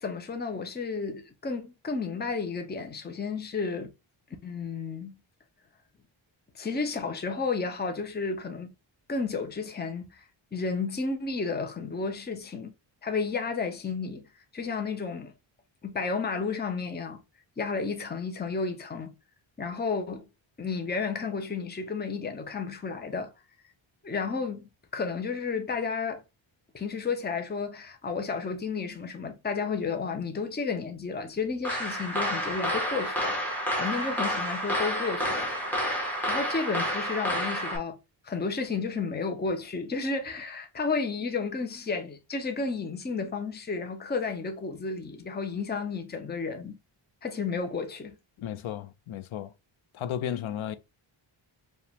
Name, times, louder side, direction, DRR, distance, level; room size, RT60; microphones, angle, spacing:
voice 1, 0.0-3.9 4.4-5.1 6.5-8.7 9.1-10.2 10.5-12.7 13.0-14.3 14.5-15.3 15.8-17.2 17.6-19.1 19.6-20.3 20.6-23.3 24.0-26.2 26.7-35.5 36.3-38.0 38.2-46.7 47.2-48.1, left 4 dB, 20° left, 0.7 m, -32 dB
high heels, 31.6-37.8, equal, 5° left, 1.4 m, -29 dB
voice 2, 48.4-49.5 49.9-50.8, left 10 dB, 75° left, 0.6 m, -34 dB
4.8 x 2.5 x 3.4 m
wide cardioid pair, 135°, 49 cm